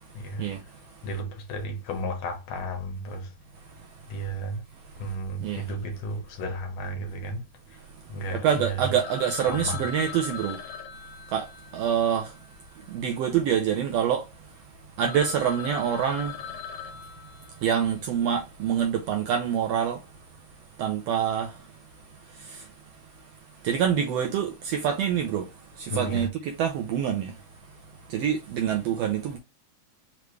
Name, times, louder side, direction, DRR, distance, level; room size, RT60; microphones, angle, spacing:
voice 1, 0.1-0.5 1.0-3.3 4.1-4.6 5.0-7.8 8.1-8.9 9.5-9.8 25.9-26.3, right 1 dB, 65° left, 2.2 m, -33 dB
voice 2, 8.3-10.6 11.3-11.5 11.7-12.3 12.9-14.3 15.0-16.3 17.6-20.0 20.8-21.5 22.4-22.6 23.6-25.5 25.8-27.3 28.1-29.4, right 8 dB, 80° right, 1.5 m, -26 dB
Telephone, 9.0-13.4 13.6-13.7 14.3-14.4 14.7-14.8 15.0-18.0, left 7 dB, 90° left, 2.1 m, -40 dB
5.1 x 3.2 x 3.1 m
omnidirectional pair, 3.3 m